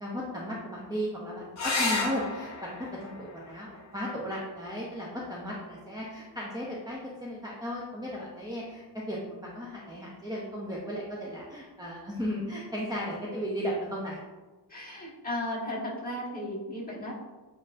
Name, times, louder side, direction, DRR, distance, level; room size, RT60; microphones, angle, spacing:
voice 1, 0.0-2.7 3.0-14.2, equal, 10° right, -5 dB, 0.5 m, -35 dB
sound 1, 1.5-6.6 8.5-9.1 12.6-12.7 13.0-13.1, left 3 dB, 40° left, 0.7 m, -36 dB
voice 2, 14.7-17.1, left 1 dB, 20° left, -7 dB, 1.2 m, -35 dB
7.3 x 2.5 x 2.5 m, 1.2 s
wide cardioid pair, 160°, 42 cm